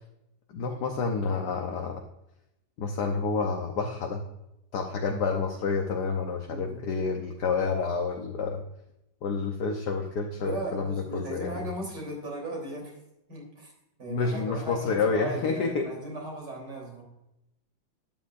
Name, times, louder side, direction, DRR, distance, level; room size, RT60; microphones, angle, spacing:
voice 1, 0.5-2.0 2.8-4.2 4.7-8.6 9.2-11.7 14.1-15.9, left 4 dB, 65° left, 2 dB, 1.4 m, -29 dB
voice 2, 6.5-6.8 10.4-12.9 13.3-13.7 14.0-17.0, right 1 dB, 60° right, -1 dB, 4.1 m, -37 dB
12.5 x 9.3 x 2.5 m, 0.87 s
omnidirectional pair, 2.1 m